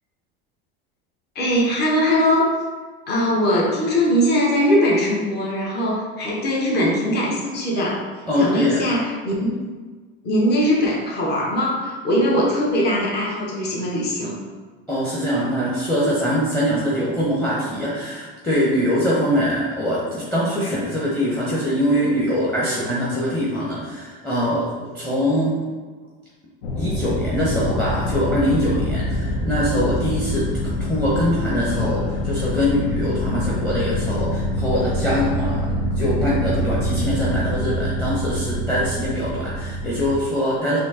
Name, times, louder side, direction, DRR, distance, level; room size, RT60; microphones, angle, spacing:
voice 1, 1.3-2.5 3.1-8.0 8.4-9.6 10.2-14.4, equal, 35° left, -3 dB, 1.0 m, -21 dB
voice 2, 8.3-8.8 14.9-25.5 26.8-40.8, equal, 5° left, -6 dB, 0.8 m, -23 dB
sound 1, 26.6-40.2, left 1 dB, 85° left, 0.7 m, -25 dB
4.2 x 2.7 x 2.8 m, 1.4 s
supercardioid pair, 115°, 30 cm